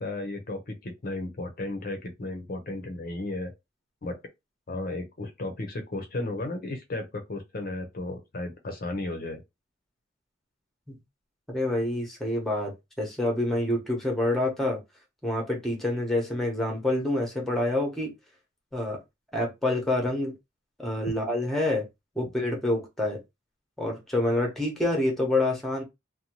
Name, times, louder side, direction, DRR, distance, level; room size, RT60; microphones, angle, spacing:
voice 1, 0.0-3.5 4.0-4.2 4.7-9.4, left 2 dB, 50° left, 0.6 m, -34 dB
voice 2, 11.5-14.8 15.2-18.1 18.7-19.0 19.3-20.3 20.8-21.9 22.2-23.2 23.8-25.8, left 1 dB, ahead, 0.8 m, -27 dB
2.7 x 2.2 x 2.9 m
head